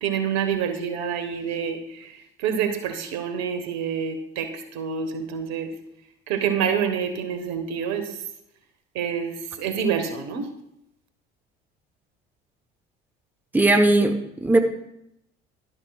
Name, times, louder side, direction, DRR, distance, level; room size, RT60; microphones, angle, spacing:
voice 1, 0.0-1.8 2.4-4.5 4.7-5.7 6.3-8.1 8.9-10.5, right 7 dB, 60° right, 8 dB, 1.4 m, -27 dB
voice 2, 13.5-14.6, right 2 dB, 5° right, 6 dB, 1.1 m, -18 dB
12.0 x 10.5 x 2.4 m, 0.79 s
hypercardioid pair, 60°, 30 cm